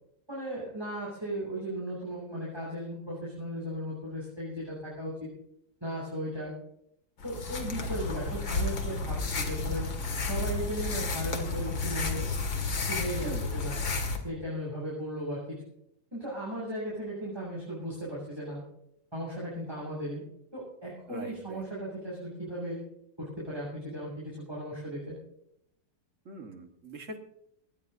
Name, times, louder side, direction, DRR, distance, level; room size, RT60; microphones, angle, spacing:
voice 1, 0.3-5.3 5.8-6.5 7.2-9.9 10.2-12.3 12.8-13.8 14.2-15.6 16.1-18.6 19.1-20.2 20.5-22.8 23.2-25.2, equal, 15° right, -6 dB, 7.9 m, -36 dB
sound 1, 7.2-14.2, left 3 dB, 85° left, 2.9 m, -32 dB
voice 2, 13.2-13.5 21.1-21.6 26.3-27.2, right 3 dB, 45° right, 5 dB, 2.0 m, -42 dB
21.5 x 20.0 x 2.7 m, 0.76 s
omnidirectional pair, 2.0 m